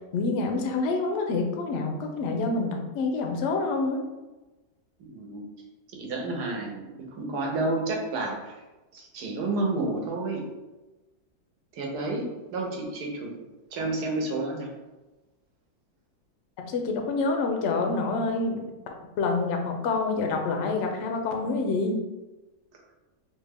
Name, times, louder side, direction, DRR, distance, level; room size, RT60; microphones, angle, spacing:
voice 1, 0.1-4.0 16.6-18.6 19.2-22.0, left 3 dB, 70° left, 3 dB, 0.7 m, -27 dB
voice 2, 5.0-5.4 5.9-6.9 7.2-8.6 8.9-10.4 11.7-13.4 13.7-14.7, right 2 dB, 85° right, 0 dB, 1.3 m, -30 dB
3.5 x 2.2 x 3.4 m, 1.1 s
omnidirectional pair, 1.7 m